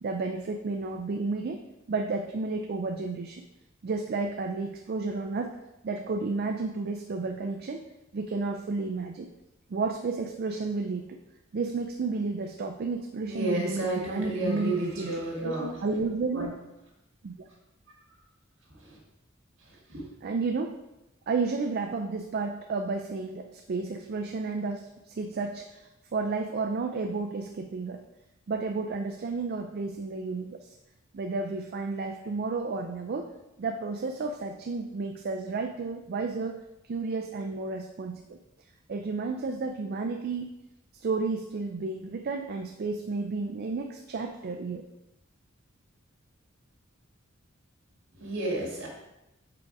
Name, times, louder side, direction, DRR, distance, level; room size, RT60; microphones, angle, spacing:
voice 1, 0.0-1.6 1.9-3.4 3.8-5.6 5.8-7.8 8.1-9.3 9.7-11.2 11.5-15.1 15.8-16.6 17.2-17.5 20.2-20.8 21.3-28.0 28.5-30.8 31.1-33.3 33.6-36.6 36.9-38.4 38.9-40.6 41.0-44.9, right 4 dB, 50° right, 3 dB, 0.4 m, -32 dB
voice 2, 13.2-15.8 16.3-16.5 18.7-19.0 19.9-20.1 48.2-48.9, right 2 dB, 65° right, -2 dB, 1.9 m, -31 dB
4.9 x 4.6 x 4.8 m, 0.94 s
head